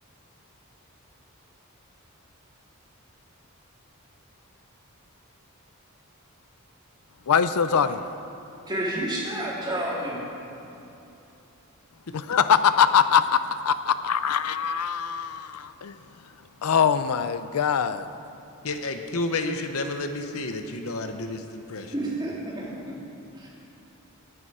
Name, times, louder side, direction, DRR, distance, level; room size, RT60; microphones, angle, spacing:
voice 1, 7.3-8.0 12.1-13.4 13.6-15.9 16.6-18.1, left 7 dB, 85° left, 12 dB, 0.5 m, -22 dB
voice 2, 8.7-10.2 21.9-22.9 23.3-23.5, right 1 dB, 20° right, -5 dB, 2.8 m, -30 dB
voice 3, 18.6-21.9, left 2 dB, 70° left, 6 dB, 1.0 m, -30 dB
18.5 x 9.7 x 4.9 m, 3.0 s
head